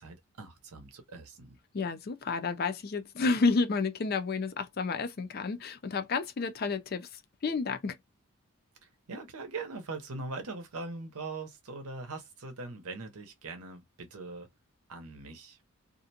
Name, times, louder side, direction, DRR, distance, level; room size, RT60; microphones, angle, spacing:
voice 1, 0.0-1.6 8.8-14.5 14.9-15.6, right 3 dB, 85° right, 0.7 m, -41 dB
voice 2, 1.7-7.1 7.4-8.0, left 4 dB, 45° left, 0.4 m, -30 dB
2.5 x 2.1 x 2.7 m
head